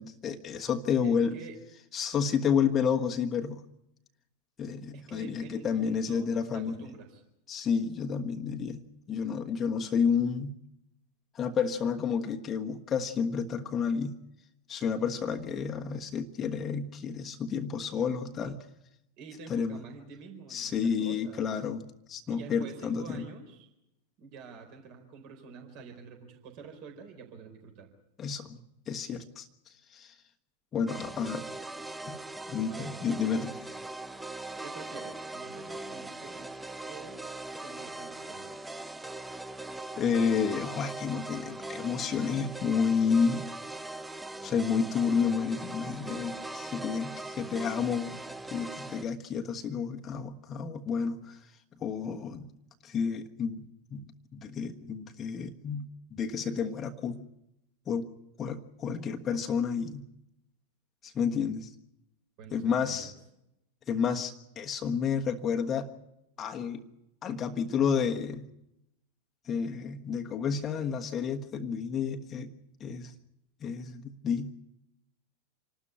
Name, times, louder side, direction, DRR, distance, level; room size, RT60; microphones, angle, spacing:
voice 1, 0.0-1.4 1.9-3.6 4.6-6.8 7.5-8.8 9.1-10.6 11.3-14.2 14.7-18.6 19.5-19.8 20.5-23.2 28.2-28.6 28.9-29.5 29.9-30.1 30.7-31.4 32.0-32.2 32.5-33.6 40.0-43.5 44.4-48.2 48.5-51.4 51.8-52.5 52.8-57.2 57.9-58.1 58.4-60.1 61.0-61.7 62.5-63.1 63.9-65.9 66.4-66.8 67.2-68.4 69.5-72.5 72.8-73.1 73.6-74.5, left 6 dB, 25° left, 3 dB, 1.4 m, -30 dB
voice 2, 1.0-1.6 4.9-7.2 19.2-21.5 22.3-23.7 24.2-27.9 32.7-33.0 34.6-36.6 36.9-38.5 62.4-63.1, right 5 dB, 45° right, 3 dB, 4.3 m, -47 dB
sound 1, 30.9-49.0, right 2 dB, 5° right, 0.8 m, -40 dB
27.0 x 12.5 x 9.8 m, 0.85 s
figure-of-eight pair, 90°, 0 cm